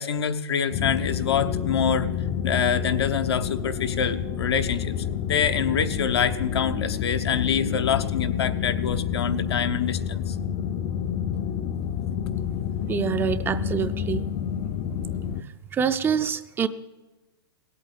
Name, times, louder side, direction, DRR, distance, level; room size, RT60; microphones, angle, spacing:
voice 1, 0.0-2.1 2.4-5.0 5.2-10.4, left 7 dB, 85° left, 8 dB, 0.9 m, -26 dB
sound 1, 0.7-15.4, left 8 dB, 40° left, 0.5 m, -29 dB
voice 2, 12.9-14.2 15.4-16.7, right 7 dB, 15° right, 11 dB, 0.5 m, -26 dB
17.0 x 8.4 x 7.5 m, 1.2 s
hypercardioid pair, 130°, 13 cm